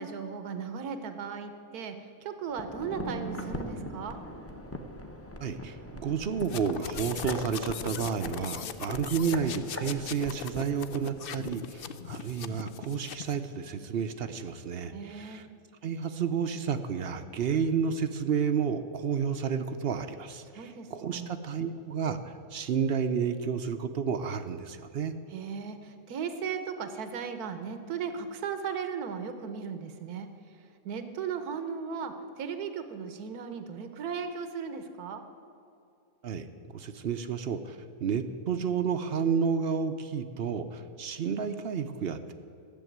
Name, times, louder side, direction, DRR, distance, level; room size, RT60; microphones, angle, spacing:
voice 1, 0.0-1.9 2.2-4.2 14.9-15.4 20.5-21.3 25.3-30.3 30.8-35.2, right 6 dB, 85° right, 9 dB, 1.4 m, -36 dB
sound 1, 2.5-11.6 11.9-12.0, equal, 15° left, 0.6 m, -41 dB
voice 2, 5.4-15.5 15.8-25.1 36.2-36.5 36.7-42.3, right 6 dB, 60° right, 9 dB, 0.7 m, -31 dB
sound 2, 6.4-13.4, left 8 dB, 65° left, 0.5 m, -40 dB
14.0 x 7.1 x 9.2 m, 2.6 s
omnidirectional pair, 1.6 m